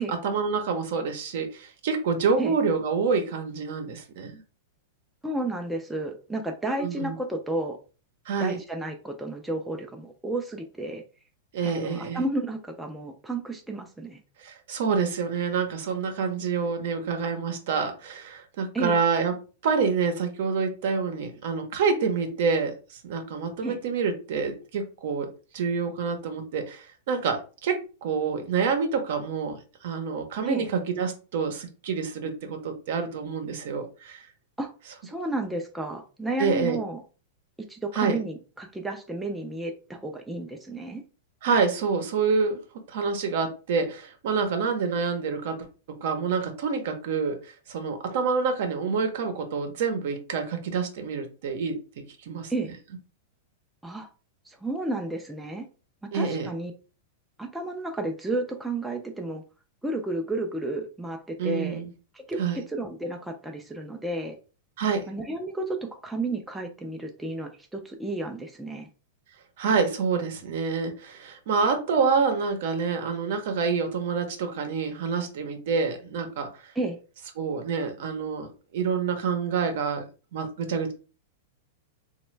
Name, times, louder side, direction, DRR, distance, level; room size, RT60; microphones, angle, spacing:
voice 1, 0.0-4.4 6.8-7.1 8.3-8.6 11.5-12.2 14.4-19.4 19.6-34.3 36.4-36.8 37.9-38.2 41.4-42.6 42.9-47.4 47.7-52.5 56.1-56.5 61.4-61.9 62.4-62.6 64.8-65.1 69.6-76.6 77.4-78.5 78.7-80.0 80.3-80.9, right 5 dB, 65° right, 6 dB, 0.7 m, -27 dB
voice 2, 5.2-7.8 8.4-11.0 11.6-14.2 18.7-19.0 23.6-23.8 30.5-30.7 34.6-34.7 35.0-37.0 37.7-41.0 52.5-52.7 53.8-54.1 54.5-55.6 56.1-56.7 57.4-59.4 59.8-61.8 62.1-64.4 65.1-68.9 76.8-77.0, right 2 dB, 5° right, 2 dB, 0.4 m, -32 dB
3.0 x 2.1 x 3.1 m, 0.35 s
supercardioid pair, 145°, 0 cm